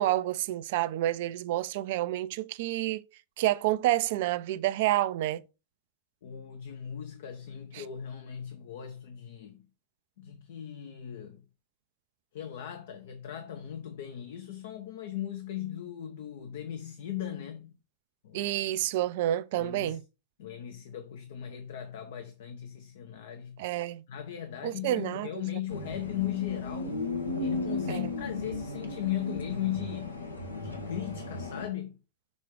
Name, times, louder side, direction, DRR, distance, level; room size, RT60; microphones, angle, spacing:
voice 1, 0.0-3.0 3.4-5.4 7.7-7.8 18.3-20.0 23.6-24.0 24.6-25.4 27.9-28.1, right 14 dB, 50° right, 0.4 m, -29 dB
voice 2, 6.2-9.7 10.2-11.4 12.3-17.7 18.2-18.4 19.5-20.0 20.4-23.6 24.1-27.0 27.4-30.2 30.6-32.0, left 11 dB, 55° left, 0.7 m, -38 dB
sound 1, 25.7-31.7, left 3 dB, 85° left, 1.2 m, -35 dB
6.3 x 3.7 x 4.6 m
figure-of-eight pair, 90°, 0 cm